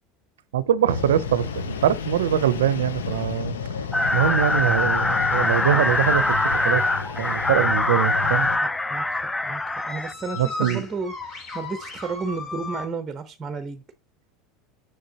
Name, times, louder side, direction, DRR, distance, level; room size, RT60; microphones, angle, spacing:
voice 1, 0.5-3.6 4.1-6.2 6.6-6.8 7.2-8.5 10.4-10.8, right 10 dB, 85° right, 0.5 m, -23 dB
sound 1, 0.8-12.9, left 3 dB, 45° left, 1.8 m, -41 dB
sound 2, 0.9-8.6, left 6 dB, 90° left, 0.6 m, -31 dB
sound 3, 3.9-10.1, left 2 dB, 10° left, 0.4 m, -23 dB
voice 2, 8.6-13.8, right 4 dB, 25° right, 0.7 m, -33 dB
6.6 x 6.6 x 2.8 m
hypercardioid pair, 90°, 0 cm